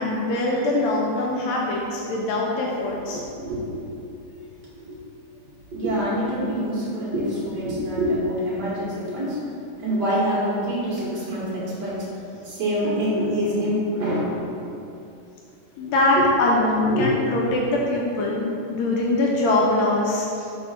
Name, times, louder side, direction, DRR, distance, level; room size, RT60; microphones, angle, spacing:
voice 1, 0.0-3.2 15.8-20.5, left 2 dB, 90° left, -3 dB, 1.5 m, -23 dB
voice 2, 3.1-3.9 4.7-5.0 5.7-9.4 9.7-12.1 12.4-14.4 16.2-16.3 16.9-17.1, equal, 60° right, -7 dB, 1.0 m, -26 dB
4.4 x 4.3 x 5.7 m, 2.7 s
omnidirectional pair, 3.9 m